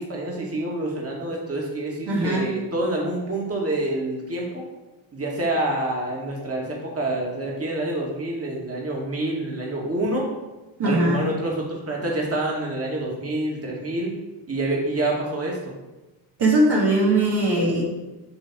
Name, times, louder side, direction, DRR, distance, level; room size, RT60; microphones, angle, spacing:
voice 1, 0.0-4.6 5.1-10.3 10.8-14.1 14.5-15.7, right 1 dB, 30° right, -2 dB, 2.1 m, -27 dB
voice 2, 2.1-2.5 10.8-11.2 16.4-17.8, right 2 dB, 55° right, -4 dB, 1.8 m, -20 dB
6.8 x 3.4 x 6.1 m, 1.1 s
supercardioid pair, 70°, 48 cm